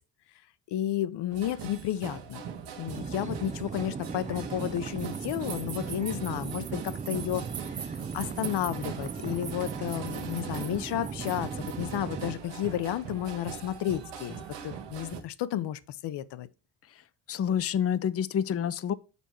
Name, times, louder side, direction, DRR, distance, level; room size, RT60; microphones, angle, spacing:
voice 1, 0.7-2.4 2.8-7.4 7.7-7.8 8.1-14.4 14.6-16.5, left 12 dB, 70° left, 0.9 m, -32 dB
sound 1, 1.3-15.2, right 7 dB, 75° right, 1.4 m, -41 dB
sound 2, 2.9-12.4, right 5 dB, 20° right, 0.4 m, -38 dB
sound 3, 5.0-12.0, right 8 dB, 40° right, 1.1 m, -44 dB
voice 2, 17.3-18.9, left 8 dB, 35° left, 0.6 m, -28 dB
7.0 x 4.5 x 4.4 m
supercardioid pair, 70°, 43 cm